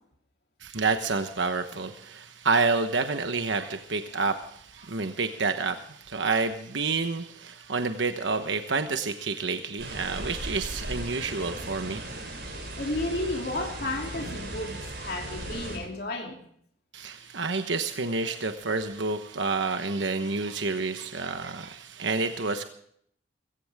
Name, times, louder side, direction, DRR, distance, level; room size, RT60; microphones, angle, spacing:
voice 1, 0.6-12.1 16.9-22.6, right 4 dB, 80° right, 7 dB, 1.1 m, -29 dB
sound 1, 9.8-15.8, right 1 dB, 60° right, 8.0 m, -37 dB
voice 2, 12.8-16.4, left 2 dB, 55° left, 1 dB, 3.0 m, -32 dB
22.5 x 15.5 x 3.6 m, 0.66 s
head